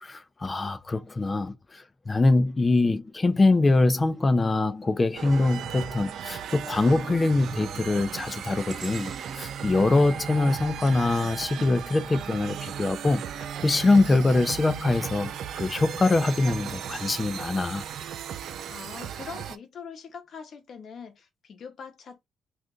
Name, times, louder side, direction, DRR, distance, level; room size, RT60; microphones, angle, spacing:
voice 1, 0.0-17.8, left 2 dB, 25° left, 0.5 m, -24 dB
sound 1, 4.1-4.5 5.0-11.8 13.1-15.3 15.9-16.1 17.0-17.1, right 5 dB, 40° right, 0.8 m, -49 dB
sound 2, 5.2-19.6, right 9 dB, 70° right, 0.4 m, -36 dB
voice 2, 18.7-22.3, left 6 dB, 60° left, 0.9 m, -43 dB
2.5 x 2.5 x 3.7 m
cardioid pair, 90°, 0 cm